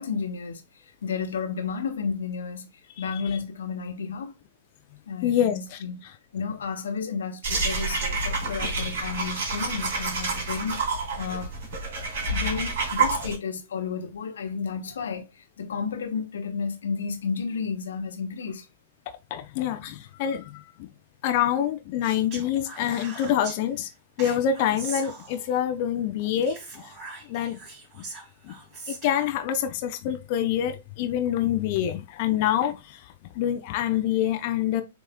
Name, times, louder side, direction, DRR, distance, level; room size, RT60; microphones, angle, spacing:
voice 1, 0.0-2.7 3.0-4.4 5.1-6.0 6.3-10.8 11.2-11.5 12.2-18.7, left 5 dB, 65° left, 1.2 m, -32 dB
voice 2, 5.2-5.8 19.3-20.9 21.2-23.9 24.2-26.8 27.3-27.6 28.0-28.1 28.4-28.5 28.9-33.0 33.4-34.8, left 10 dB, 45° left, 0.6 m, -26 dB
sound 1, 7.4-13.4, right 3 dB, 50° right, 2.5 m, -28 dB
Speech, 22.0-23.6 24.2-25.6 26.4-29.3, right 3 dB, 30° right, 2.7 m, -41 dB
7.0 x 3.1 x 2.3 m
figure-of-eight pair, 105°, 0 cm